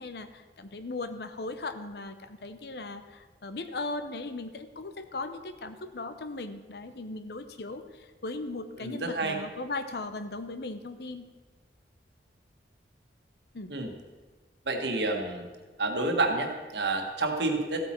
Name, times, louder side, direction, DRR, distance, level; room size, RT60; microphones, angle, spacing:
voice 1, 0.0-11.3 13.5-13.7, left 2 dB, 65° left, 10 dB, 0.7 m, -38 dB
voice 2, 8.8-9.4 13.7-13.9 14.6-15.5 15.8-17.8, right 2 dB, 80° right, 3 dB, 1.5 m, -29 dB
14.0 x 8.7 x 4.4 m, 1.4 s
head